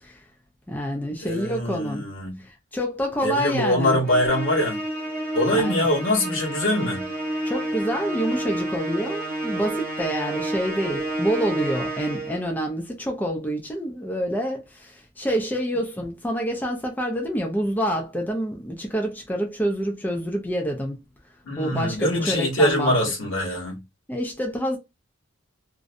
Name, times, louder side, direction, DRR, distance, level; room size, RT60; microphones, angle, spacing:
voice 1, 0.7-2.0 2.4-4.0 5.5-5.9 7.4-21.0 21.6-22.9 24.1-24.8, equal, 10° left, 0.3 m, -27 dB
voice 2, 1.2-2.4 3.2-4.8 5.3-7.0 21.4-23.8, left 1 dB, 80° left, 1.0 m, -23 dB
Musical instrument, 4.0-12.5, right 1 dB, 45° right, 0.6 m, -30 dB
2.5 x 2.0 x 2.5 m
head